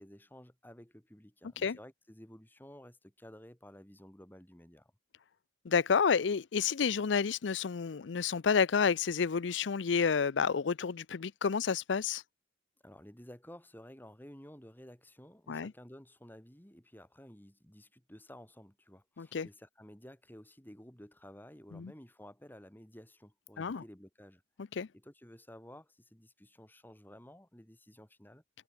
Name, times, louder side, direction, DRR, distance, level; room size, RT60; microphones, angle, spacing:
voice 1, 0.0-4.9 12.8-24.4 24.9-28.4, equal, 10° left, 3.0 m, -53 dB
voice 2, 5.6-12.2 15.5-15.7 19.2-19.5 21.7-21.9 23.6-23.8 24.8-24.9, left 6 dB, 70° left, 0.5 m, -30 dB
head